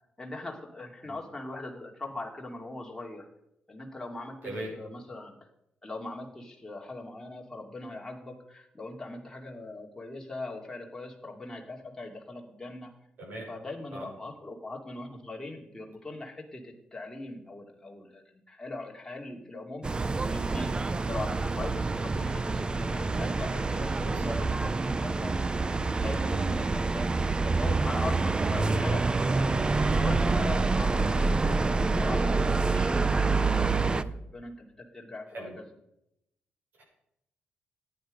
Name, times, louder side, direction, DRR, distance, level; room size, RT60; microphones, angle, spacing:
voice 1, 0.2-3.3 3.7-5.3 5.8-12.9 13.5-19.8 20.3-33.1 33.4-35.7, left 2 dB, 10° left, 0 dB, 2.5 m, -41 dB
voice 2, 13.2-13.5 13.9-14.1 24.0-24.4 34.1-34.2 35.3-35.5 36.8-36.9, right 1 dB, 60° right, -2 dB, 6.6 m, -39 dB
sound 1, 19.8-34.0, right 3 dB, 25° right, 0.5 m, -27 dB
14.5 x 9.8 x 5.2 m, 0.82 s
cardioid pair, 110°, 4 cm